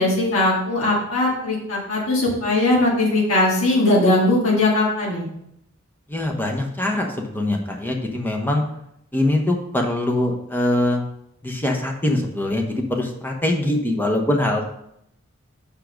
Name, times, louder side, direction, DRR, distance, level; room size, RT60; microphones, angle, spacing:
voice 1, 0.0-5.3, left 2 dB, 80° left, -5 dB, 2.0 m, -19 dB
voice 2, 6.1-8.6 9.1-11.0 11.4-14.6, left 1 dB, 10° left, 2 dB, 1.0 m, -23 dB
5.6 x 5.1 x 6.4 m, 0.76 s
head